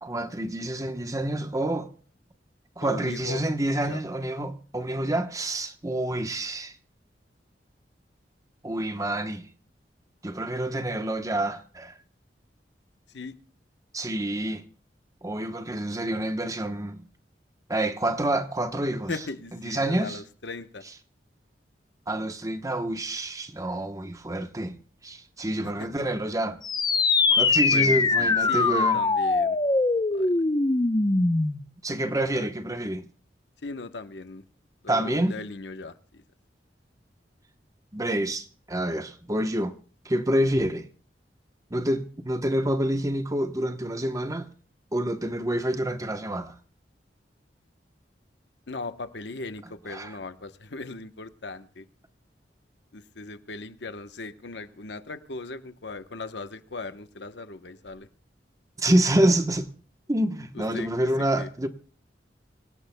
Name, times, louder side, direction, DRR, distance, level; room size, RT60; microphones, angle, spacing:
voice 1, 0.0-1.9 2.8-6.8 8.6-9.5 10.2-12.0 13.9-14.6 15.2-17.0 17.7-19.2 19.5-20.2 22.1-24.8 25.0-26.6 27.3-29.0 31.8-33.1 34.9-35.4 37.9-39.7 40.0-40.9 41.7-44.5 44.9-46.5 49.9-50.2 58.8-59.7 60.1-61.7, right 1 dB, 20° right, 1.0 m, -27 dB
voice 2, 2.8-3.4 3.9-4.0 13.1-13.3 19.1-20.8 25.8-25.9 27.7-29.6 30.1-30.3 32.3-32.5 33.6-34.4 34.8-36.2 48.7-51.9 52.9-58.1 60.5-61.1 61.4-61.5, left 3 dB, 80° left, 1.0 m, -38 dB
sound 1, 26.6-31.7, left 3 dB, 25° left, 0.7 m, -22 dB
25.5 x 17.5 x 2.2 m
head